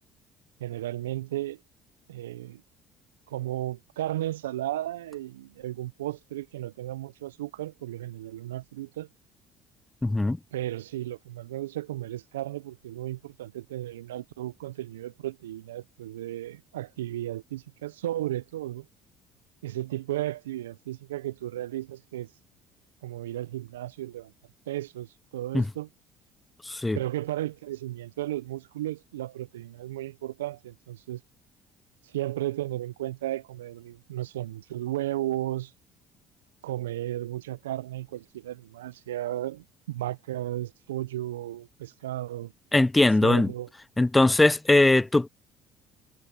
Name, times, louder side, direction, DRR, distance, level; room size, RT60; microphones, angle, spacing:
voice 1, 0.6-1.6 2.1-2.6 3.3-9.1 10.5-18.8 19.6-22.3 23.0-24.3 24.7-25.9 26.9-31.2 32.0-35.7 36.6-42.5 43.2-43.7, right 14 dB, 85° right, 0.7 m, -34 dB
voice 2, 10.0-10.4 25.5-25.7 26.7-27.0 42.7-43.5 44.0-45.3, left 2 dB, 15° left, 0.7 m, -20 dB
hypercardioid pair, 60°, 0 cm